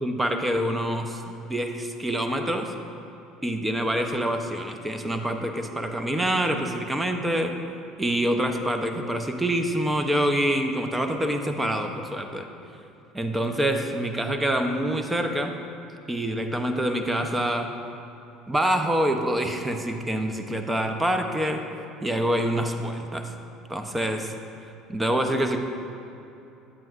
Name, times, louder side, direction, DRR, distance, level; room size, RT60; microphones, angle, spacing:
voice 1, 0.0-1.2 1.5-2.7 3.4-7.6 8.0-12.5 13.1-15.5 16.1-17.7 18.5-21.6 22.0-23.3 23.7-24.3 24.9-25.6, right 1 dB, 10° right, 5 dB, 0.6 m, -26 dB
9.0 x 8.7 x 2.5 m, 2.9 s
supercardioid pair, 90°, 0 cm